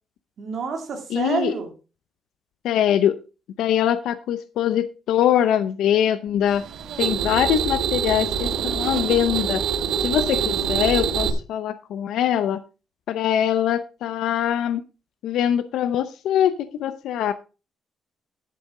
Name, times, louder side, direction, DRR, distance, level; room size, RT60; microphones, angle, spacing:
voice 1, 0.4-1.7, right 5 dB, 45° right, 3 dB, 2.6 m, -28 dB
voice 2, 1.1-1.5 2.6-3.2 3.6-6.6 7.0-9.6 10.0-12.6 13.1-14.8 15.2-17.3, left 10 dB, 85° left, 11 dB, 0.6 m, -22 dB
sound 1, 6.5-11.3, right 7 dB, 65° right, 1.4 m, -25 dB
11.0 x 8.4 x 3.7 m, 0.32 s
cardioid pair, 175°, 0 cm